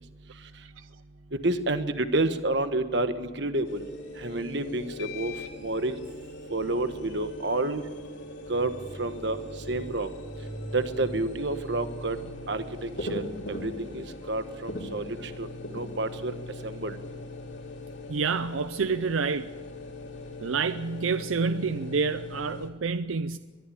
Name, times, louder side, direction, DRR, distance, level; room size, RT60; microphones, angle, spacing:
voice 1, 1.4-3.8 4.2-5.3 5.6-6.0 6.5-7.8 8.5-8.7 9.0-9.4 9.7-10.1 10.7-12.2 12.5-13.2 13.5-15.0 15.4-15.5 15.7-16.3 16.6-17.0, right 2 dB, 60° right, 1.3 m, -29 dB
sound 1, 3.6-22.7, left 1 dB, 65° left, 2.8 m, -40 dB
voice 2, 18.1-19.5 20.4-23.4, right 5 dB, 85° right, 0.6 m, -28 dB
21.5 x 13.5 x 10.0 m
head